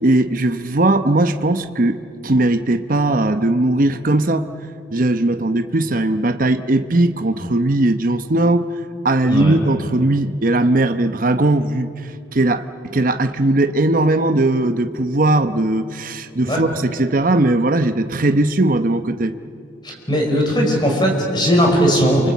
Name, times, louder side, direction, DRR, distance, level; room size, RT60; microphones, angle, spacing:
voice 1, 0.0-4.5 4.9-8.7 9.0-12.6 12.9-19.3, right 2 dB, 45° right, 9 dB, 0.9 m, -18 dB
voice 2, 20.1-22.3, equal, 25° left, 0 dB, 5.4 m, -17 dB
28.5 x 24.5 x 8.4 m, 2.5 s
head